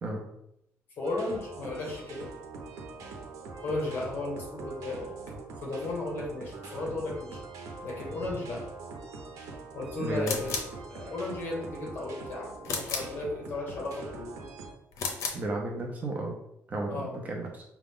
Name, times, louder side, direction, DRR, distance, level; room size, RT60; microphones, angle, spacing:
voice 1, 1.0-2.3 3.6-5.1 5.6-7.4 7.8-8.6 9.7-14.3 16.9-17.2, left 2 dB, 35° left, -2 dB, 1.2 m, -35 dB
sound 1, 1.0-14.7, right 3 dB, 85° right, 0.8 m, -43 dB
voice 2, 10.0-10.4 15.3-16.3 16.7-17.6, right 2 dB, 30° right, 0 dB, 0.6 m, -33 dB
sound 2, 10.2-10.8 12.6-13.2 14.9-15.5, left 4 dB, 65° left, 0.6 m, -33 dB
4.9 x 2.3 x 3.6 m, 0.79 s
cardioid pair, 175°, 6 cm